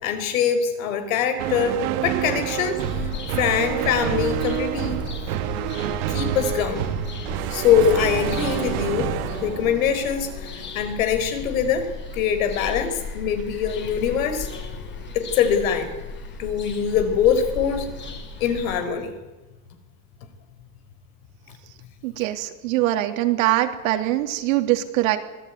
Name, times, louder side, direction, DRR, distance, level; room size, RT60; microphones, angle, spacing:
voice 1, 0.0-3.1 3.4-5.0 6.1-6.8 7.5-9.1 9.4-11.9 12.1-12.9 13.1-14.5 15.1-15.9 16.4-17.9 18.4-19.1, left 7 dB, 90° left, 9 dB, 4.9 m, -23 dB
sound 1, 1.4-10.8, right 11 dB, 60° right, 1.9 m, -28 dB
Bird vocalization bird call bird song, 2.8-18.8, left 5 dB, 25° left, 3.3 m, -36 dB
voice 2, 22.0-25.2, right 15 dB, 85° right, 6 dB, 3.2 m, -22 dB
25.0 x 18.0 x 9.5 m, 1.2 s
supercardioid pair, 155°, 39 cm